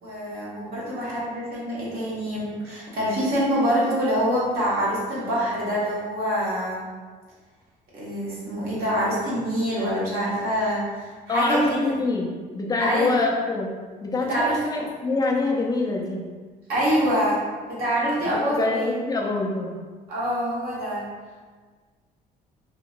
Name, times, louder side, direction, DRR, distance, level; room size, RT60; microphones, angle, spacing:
voice 1, 0.0-6.9 7.9-12.0 12.8-13.1 14.3-14.6 16.7-17.4 17.7-18.9 20.1-21.0, equal, 65° right, -7 dB, 1.2 m, -25 dB
voice 2, 11.3-13.7 14.0-16.3 18.2-19.7, left 3 dB, 20° left, -1 dB, 0.5 m, -25 dB
2.9 x 2.8 x 2.5 m, 1.4 s
cardioid pair, 110°, 17 cm